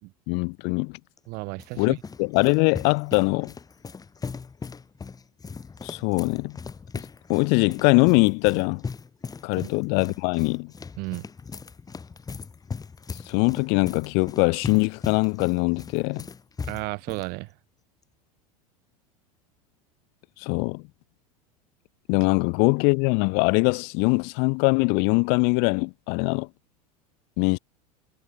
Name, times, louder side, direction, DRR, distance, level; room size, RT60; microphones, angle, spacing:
voice 1, 0.3-1.0 1.8-3.5 5.8-6.6 7.3-8.8 9.4-10.7 13.3-16.3 20.4-20.8 22.1-26.5 27.4-27.6, left 38 dB, 55° left, 1.5 m, -22 dB
sound 1, 1.2-17.3, left 5 dB, 20° left, 2.7 m, -39 dB
voice 2, 1.3-1.9 9.6-9.7 11.0-11.2 16.7-17.5, right 25 dB, 50° right, 1.4 m, -33 dB
figure-of-eight pair, 80°, 20 cm